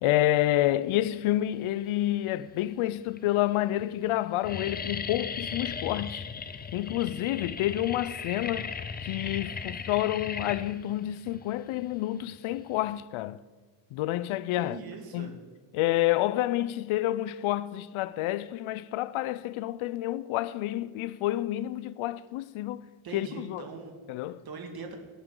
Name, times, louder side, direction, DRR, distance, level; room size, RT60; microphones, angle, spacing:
voice 1, 0.0-6.3 6.7-8.7 9.0-13.4 13.9-14.8 15.1-15.4 15.7-22.8 23.1-23.6 24.1-24.4, left 14 dB, 75° left, 0.6 m, -29 dB
sound 1, 1.8-2.4 3.1-3.2 3.4-3.8 4.1-13.0, left 6 dB, 20° left, 0.4 m, -37 dB
voice 2, 14.5-15.4 23.0-23.9 24.4-25.0, right 4 dB, 45° right, 1.9 m, -41 dB
17.0 x 11.5 x 3.8 m
cardioid pair, 165°, 50 cm